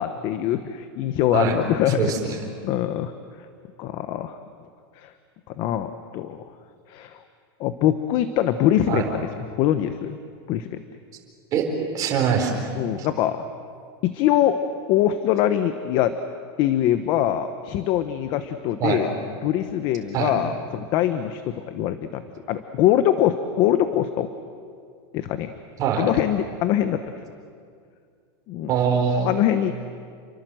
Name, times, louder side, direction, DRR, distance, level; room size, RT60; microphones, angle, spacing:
voice 1, 0.0-2.1 2.6-3.1 3.8-4.4 5.0-5.1 5.6-6.4 6.9-7.2 7.6-9.3 9.6-10.2 10.5-10.8 12.8-13.4 14.0-14.6 14.9-16.1 16.6-19.1 19.4-22.2 22.5-24.3 25.1-25.5 26.0-27.1 28.5-28.7 29.2-29.7, left 11 dB, 35° left, 10 dB, 1.0 m, -23 dB
voice 2, 2.0-2.4 8.9-9.1 11.5-11.7 11.9-12.7 18.8-19.0 20.1-20.4 25.8-26.1 28.7-29.3, right 7 dB, 25° right, 2 dB, 4.4 m, -23 dB
29.5 x 23.5 x 7.8 m, 2.2 s
supercardioid pair, 170°, 13 cm